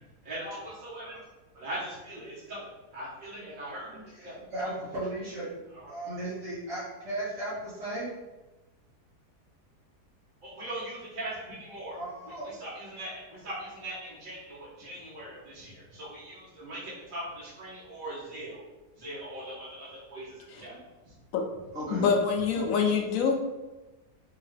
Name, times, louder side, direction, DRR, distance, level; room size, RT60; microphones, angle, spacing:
voice 1, 0.2-1.2 1.5-4.4 5.7-5.9 10.4-12.0 12.3-18.6 19.0-20.7 22.8-22.9, right 1 dB, 35° right, -9 dB, 1.3 m, -40 dB
voice 2, 3.9-5.5 5.9-8.1 11.9-12.5 21.7-22.1 22.5-22.8, right 1 dB, 60° right, -10 dB, 1.4 m, -36 dB
voice 3, 21.9-23.4, left 5 dB, 70° left, 3 dB, 0.9 m, -25 dB
3.6 x 2.8 x 3.2 m, 1.1 s
omnidirectional pair, 1.7 m